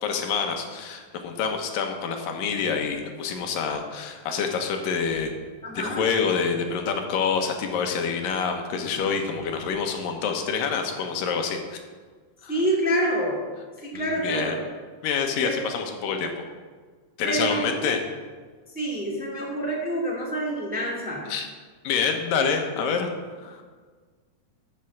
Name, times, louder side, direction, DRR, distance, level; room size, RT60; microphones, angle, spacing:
voice 1, 0.0-5.3 5.8-11.8 12.4-12.5 13.9-14.6 15.0-16.3 17.2-18.0 21.3-21.5 21.8-23.1 23.4-23.6, left 6 dB, 80° left, 4 dB, 2.8 m, -27 dB
voice 2, 5.6-6.1 12.5-13.4 13.8-14.6 15.4-15.6 16.0-16.2 17.2-17.6 18.7-21.3, right 1 dB, 5° right, -3 dB, 1.7 m, -27 dB
11.0 x 6.8 x 7.4 m, 1.5 s
omnidirectional pair, 4.0 m